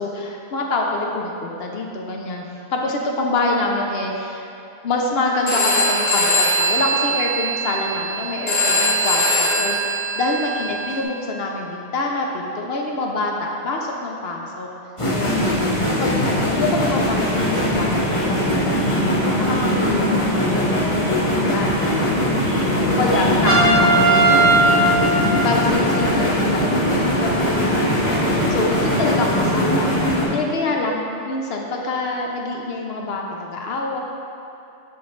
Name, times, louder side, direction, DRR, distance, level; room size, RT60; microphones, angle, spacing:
voice 1, 0.0-4.5 4.8-9.8 10.2-14.7 15.1-15.4 16.0-20.7 21.0-21.7 22.9-24.6 25.4-29.9 30.3-34.0, left 2 dB, 65° left, 0 dB, 0.8 m, -26 dB
Telephone, 5.5-11.0, equal, 90° left, 1.9 m, -21 dB
sound 1, 15.0-30.2, equal, 30° left, 1.0 m, -20 dB
Trumpet, 23.5-26.1, right 2 dB, 40° right, 0.8 m, -18 dB
8.1 x 4.4 x 3.1 m, 2.7 s
omnidirectional pair, 1.2 m